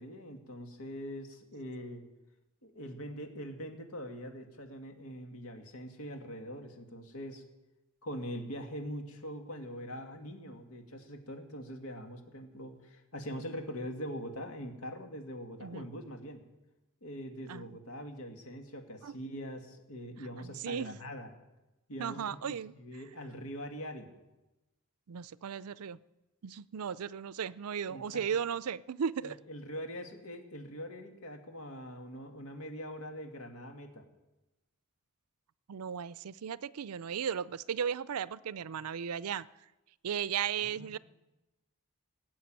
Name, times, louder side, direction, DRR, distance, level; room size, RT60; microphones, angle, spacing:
voice 1, 0.0-2.0 2.6-7.4 8.0-16.4 17.0-21.3 21.9-24.1 27.9-28.4 29.2-34.0 40.7-41.0, equal, 85° left, 4 dB, 2.2 m, -43 dB
voice 2, 20.4-21.0 22.0-22.7 25.1-26.0 26.4-29.4 35.7-39.5 40.0-41.0, right 7 dB, 90° right, 19 dB, 0.5 m, -36 dB
18.5 x 7.5 x 8.9 m, 1.0 s
head